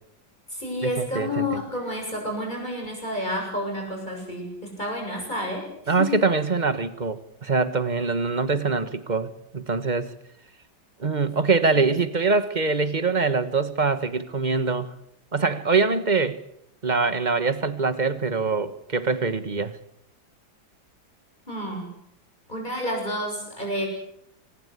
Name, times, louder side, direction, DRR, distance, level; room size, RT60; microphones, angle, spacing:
voice 1, 0.5-6.1 11.7-11.9 21.5-21.9 22.5-23.9, left 1 dB, 20° left, 1 dB, 7.6 m, -30 dB
voice 2, 1.1-1.6 5.9-10.1 11.0-14.9 15.3-16.4 16.8-19.8, right 4 dB, 25° right, 12 dB, 1.4 m, -24 dB
25.5 x 20.0 x 8.4 m, 0.74 s
omnidirectional pair, 2.0 m